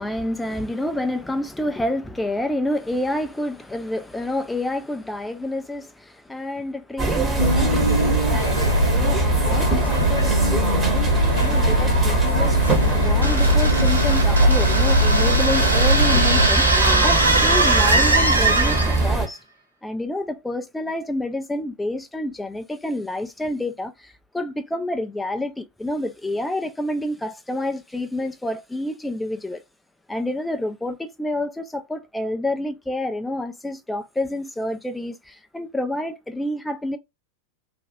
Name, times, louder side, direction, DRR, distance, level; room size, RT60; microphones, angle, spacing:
voice 1, 0.0-19.4 19.8-29.6 30.1-37.0, left 1 dB, 5° left, 0.4 m, -28 dB
sound 1, 7.0-19.3, right 3 dB, 15° right, 0.9 m, -23 dB
sound 2, 7.4-16.5, left 1 dB, 85° left, 0.4 m, -21 dB
sound 3, 13.2-19.1, right 2 dB, 80° right, 0.6 m, -21 dB
2.5 x 2.3 x 2.5 m
figure-of-eight pair, 90°, 0 cm